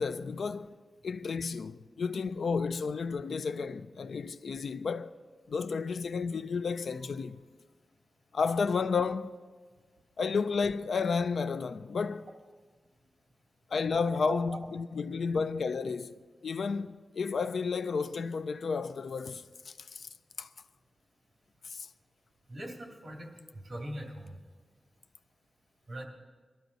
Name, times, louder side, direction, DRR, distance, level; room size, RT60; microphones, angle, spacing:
voice 1, 0.0-5.2 5.5-7.4 8.3-9.4 10.2-12.3 13.7-20.1 20.4-20.5 21.6-21.9, left 5 dB, 80° left, 0.4 m, -32 dB
voice 2, 6.9-7.4 14.1-14.7 22.5-24.4 25.9-26.0, right 1 dB, 45° right, 2.8 m, -42 dB
22.0 x 12.5 x 4.0 m
wide cardioid pair, 105°, 0 cm